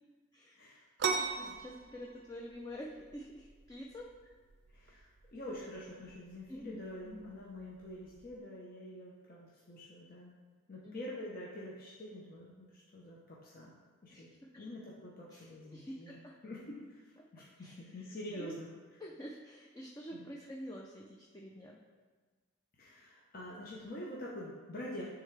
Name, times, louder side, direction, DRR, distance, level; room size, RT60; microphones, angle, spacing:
voice 1, 0.5-0.8 1.4-1.5 4.7-10.3 10.7-13.7 14.0-18.7 20.1-20.3 22.8-25.0, left 1 dB, 45° left, -5 dB, 0.8 m, -46 dB
sound 1, 1.0-8.4, right 5 dB, 55° right, 0.4 m, -41 dB
voice 2, 1.1-4.1 6.5-7.3 10.8-11.1 14.1-14.5 15.3-16.3 17.6-17.8 18.3-18.5 19.0-21.8, equal, 20° left, -2 dB, 0.4 m, -47 dB
9.9 x 3.6 x 3.3 m, 1.4 s
head